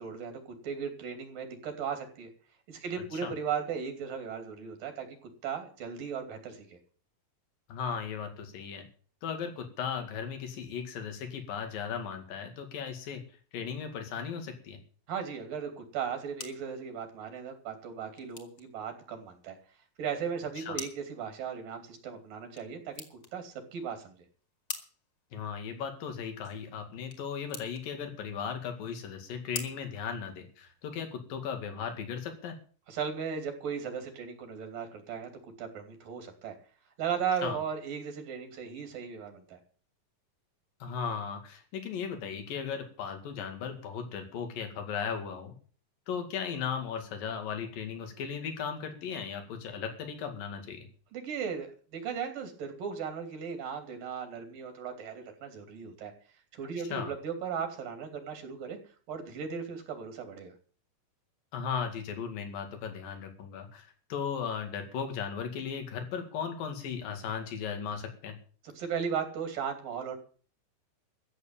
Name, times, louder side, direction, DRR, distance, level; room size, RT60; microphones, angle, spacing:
voice 1, 0.0-2.3 2.7-5.1 5.4-6.8 15.1-19.6 20.0-24.3 32.9-35.3 35.6-36.5 37.0-39.6 51.1-56.1 56.5-58.8 59.1-60.5 68.8-70.2, right 7 dB, 75° right, 6 dB, 4.3 m, -36 dB
voice 2, 7.7-8.9 9.2-13.2 13.5-14.8 20.6-20.8 25.3-32.5 37.4-37.6 40.8-45.5 46.1-50.9 56.9-57.1 61.5-68.4, left 7 dB, 85° left, 6 dB, 3.9 m, -36 dB
sound 1, 15.9-30.9, left 5 dB, 45° left, 2.8 m, -48 dB
14.5 x 7.2 x 8.9 m, 0.42 s
omnidirectional pair, 3.9 m